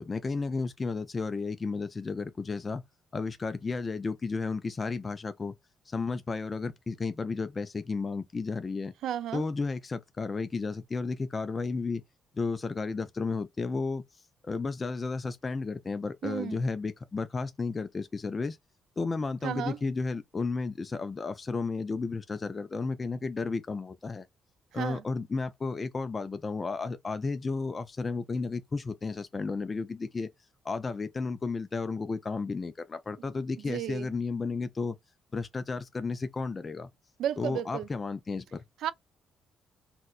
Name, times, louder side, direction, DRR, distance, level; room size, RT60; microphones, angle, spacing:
voice 1, 0.0-2.8 3.1-5.6 5.9-8.9 9.3-12.0 12.3-14.0 14.4-18.6 19.0-24.3 24.7-30.3 30.6-35.0 35.3-36.9 37.4-38.6, left 4 dB, 30° left, 0.3 m, -33 dB
voice 2, 9.0-9.4 16.2-16.6 19.4-19.8 24.7-25.0 33.7-34.1 37.2-37.9 38.8-38.9, right 10 dB, 80° right, 0.3 m, -33 dB
4.2 x 2.1 x 2.3 m
cardioid pair, 90°, 0 cm